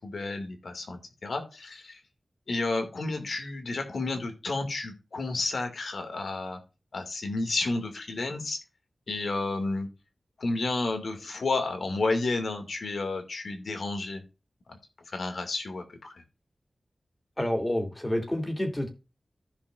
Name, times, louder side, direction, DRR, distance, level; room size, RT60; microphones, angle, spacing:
voice 1, 0.0-2.0 2.5-6.6 6.9-8.6 9.1-9.9 10.4-14.2 14.7-14.8 15.1-16.2, left 3 dB, 80° left, 5 dB, 2.3 m, -31 dB
voice 2, 17.4-18.9, left 1 dB, 20° left, 4 dB, 2.8 m, -28 dB
15.0 x 5.3 x 2.5 m, 0.30 s
wide cardioid pair, 70°, 0 cm